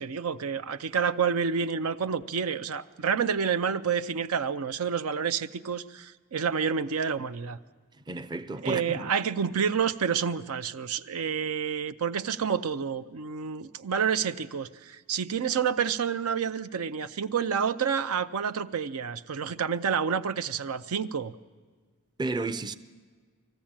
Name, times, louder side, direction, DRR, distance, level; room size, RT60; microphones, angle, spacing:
voice 1, 0.0-7.6 8.6-21.3, right 6 dB, 80° right, 0.6 m, -29 dB
voice 2, 8.1-9.1 22.2-22.8, right 2 dB, 20° right, 0.5 m, -32 dB
20.5 x 14.5 x 8.8 m
head